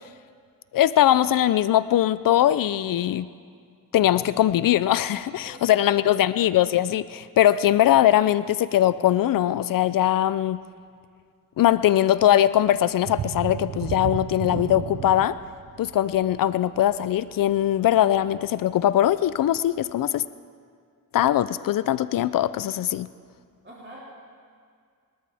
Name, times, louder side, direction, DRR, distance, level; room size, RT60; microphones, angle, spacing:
voice 1, 0.7-3.3 3.9-10.6 11.6-15.3 15.8-20.2 21.1-23.1, left 12 dB, 75° left, 16 dB, 0.5 m, -21 dB
voice 2, 5.4-6.3 23.6-24.0, right 1 dB, 35° right, -5 dB, 3.6 m, -42 dB
sound 1, 13.0-18.5 18.9-19.1 19.5-19.6, right 9 dB, 65° right, 0.7 m, -34 dB
24.5 x 13.0 x 3.5 m, 2.1 s
cardioid pair, 70°, 34 cm